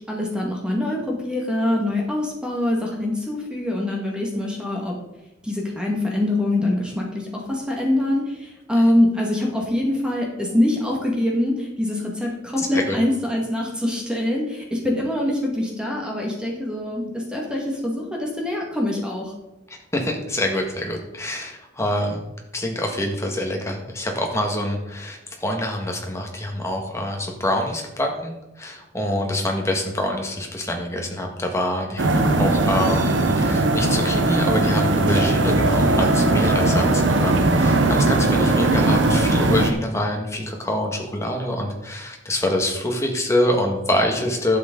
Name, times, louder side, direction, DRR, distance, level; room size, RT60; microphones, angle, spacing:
voice 1, 0.0-5.0 5.4-19.3, left 1 dB, 5° right, -2 dB, 1.9 m, -24 dB
voice 2, 12.6-13.0 19.9-22.2 22.5-44.6, left 1 dB, 15° left, 1 dB, 1.8 m, -25 dB
sound 1, 32.0-39.7, right 2 dB, 75° right, 1.0 m, -19 dB
11.0 x 7.9 x 3.9 m, 0.94 s
head